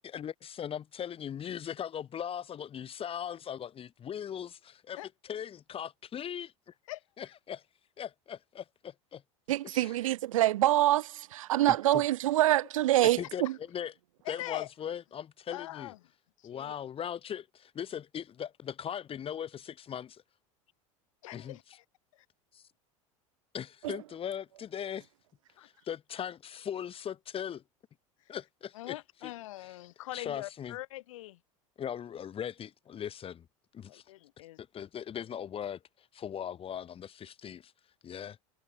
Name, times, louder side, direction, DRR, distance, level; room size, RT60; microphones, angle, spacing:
voice 1, 0.0-6.7 7.2-7.6 8.0-9.2 9.6-10.0 11.9-12.0 13.0-13.9 14.3-15.9 16.4-20.2 21.3-21.6 22.5-22.6 23.5-25.1 25.6-27.6 28.3-29.0 29.2-29.3 29.6-29.8 30.1-30.8 31.8-33.5 33.7-34.0 34.6-37.7 38.0-38.4, left 9 dB, 35° left, 2.3 m, -39 dB
voice 2, 6.9-7.3 14.3-14.7 15.5-16.0 16.4-16.7 21.2-21.6 22.1-22.2 25.6-25.7 28.7-31.4 33.9-34.6, left 16 dB, 75° left, 0.7 m, -42 dB
voice 3, 9.5-13.5 23.8-24.0, right 15 dB, 80° right, 0.5 m, -26 dB
hypercardioid pair, 90°, 17 cm